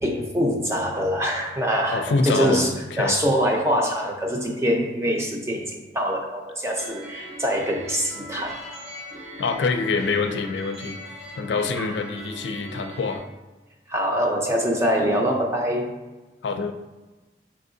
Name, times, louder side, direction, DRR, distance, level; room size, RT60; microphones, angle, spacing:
voice 1, 0.0-8.6 11.8-11.9 13.9-15.9, equal, 15° right, 0 dB, 0.5 m, -24 dB
voice 2, 1.9-3.2 9.4-11.0 11.4-13.2 16.4-16.7, left 4 dB, 90° left, 7 dB, 0.4 m, -25 dB
sound 1, 6.8-13.2, equal, 40° right, 1.1 m, -39 dB
4.6 x 3.5 x 2.7 m, 1.2 s
head